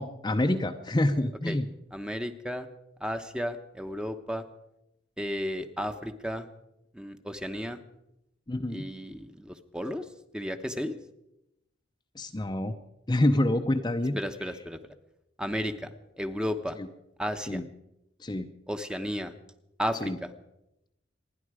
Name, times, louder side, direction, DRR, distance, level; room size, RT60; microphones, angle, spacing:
voice 1, 0.0-1.6 8.5-8.9 12.2-12.7 13.1-14.2 16.8-16.9 17.5-17.6 18.2-18.5 20.0-20.2, left 1 dB, 20° left, 5 dB, 0.6 m, -27 dB
voice 2, 1.9-2.7 3.0-4.4 5.2-6.5 6.9-7.8 8.7-10.1 10.3-10.9 14.1-14.8 15.4-15.9 16.2-16.8 17.2-17.6 18.7-19.3 19.8-20.3, equal, 5° right, 8 dB, 0.9 m, -33 dB
27.0 x 10.5 x 4.9 m, 0.86 s
head